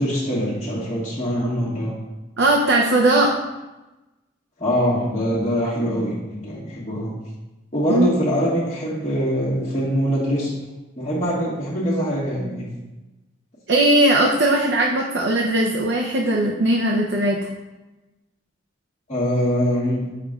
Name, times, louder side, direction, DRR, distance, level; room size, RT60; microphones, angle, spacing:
voice 1, 0.0-2.0 4.6-7.1 7.7-10.5 11.0-12.7 19.1-20.0, equal, 40° left, -9 dB, 1.3 m, -23 dB
voice 2, 2.4-3.3 7.9-8.1 13.7-17.5, right 1 dB, 70° right, -1 dB, 0.6 m, -19 dB
7.5 x 5.7 x 2.4 m, 1.1 s
head